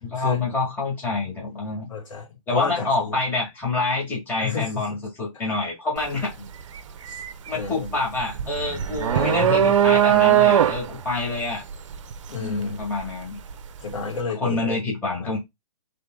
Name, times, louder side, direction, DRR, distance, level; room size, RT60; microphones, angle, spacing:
voice 1, 0.0-1.9 2.5-6.4 7.5-11.6 12.4-13.4 14.3-15.4, left 3 dB, 10° left, 1.8 m, -27 dB
voice 2, 1.9-3.2 4.4-5.0 7.1-7.2 7.5-7.9 9.1-9.8 12.3-12.8 13.8-14.8 15.2-15.4, left 5 dB, 60° left, 2.7 m, -31 dB
sound 1, 6.0-6.2 6.6-13.6, right 10 dB, 60° right, 0.6 m, -20 dB
3.8 x 3.4 x 3.7 m
hypercardioid pair, 140°, 18 cm